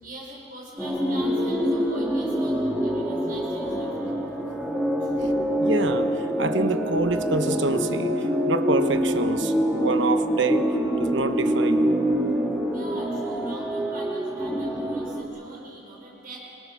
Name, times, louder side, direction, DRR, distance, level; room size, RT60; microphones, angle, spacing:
voice 1, 0.0-4.2 5.0-5.3 12.7-16.4, right 1 dB, 45° right, -3 dB, 5.2 m, -43 dB
sound 1, 0.8-15.2, equal, 5° right, 2.5 m, -25 dB
voice 2, 5.6-10.7 11.0-11.9, right 3 dB, 65° right, 8 dB, 1.3 m, -27 dB
27.5 x 24.0 x 6.3 m, 2.7 s
head